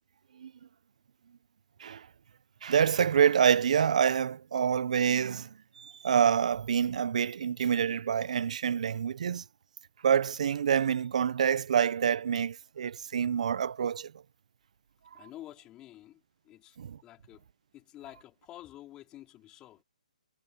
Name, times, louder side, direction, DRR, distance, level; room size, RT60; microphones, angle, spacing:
voice 1, 2.6-9.4 10.0-14.1 16.8-17.0, right 8 dB, 60° right, 1.0 m, -27 dB
voice 2, 15.1-16.8 17.0-17.4 17.7-19.8, left 14 dB, 20° left, 4.0 m, -49 dB
hypercardioid pair, 155°, 4 cm